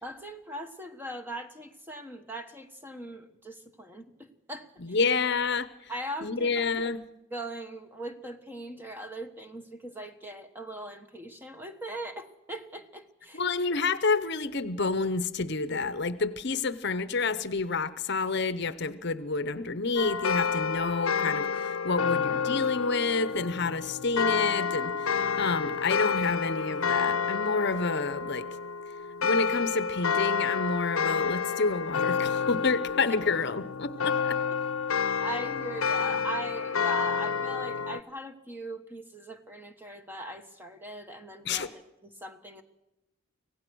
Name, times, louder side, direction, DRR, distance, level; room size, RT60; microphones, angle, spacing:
voice 1, 0.0-5.0 5.9-6.9 7.3-13.5 34.0-34.1 35.2-42.6, right 1 dB, 10° right, 6 dB, 1.3 m, -40 dB
voice 2, 4.8-5.7 6.2-7.0 13.3-28.5 29.2-34.4 41.5-41.7, left 4 dB, 55° left, 14 dB, 0.8 m, -29 dB
sound 1, 20.0-38.0, left 6 dB, 85° left, 0.7 m, -29 dB
25.0 x 17.0 x 6.2 m, 0.93 s
head